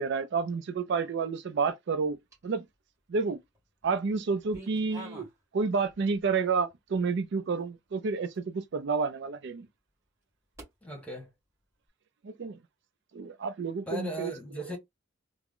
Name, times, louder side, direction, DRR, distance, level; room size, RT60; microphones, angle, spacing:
voice 1, 0.0-2.2 2.4-2.6 3.1-3.4 3.8-5.3 5.5-9.7 12.2-12.6 13.1-14.3 14.7-14.8, right 5 dB, 55° right, 0.4 m, -30 dB
sound 1, 2.3-2.7 3.3-3.9 4.2-5.4 5.8-6.3 6.9-7.0 7.6-7.7 8.3-8.4 10.6-10.7, right 1 dB, 15° right, 1.9 m, -48 dB
voice 2, 10.8-11.3 13.9-14.8, equal, 5° left, 1.2 m, -37 dB
3.5 x 2.0 x 3.6 m
head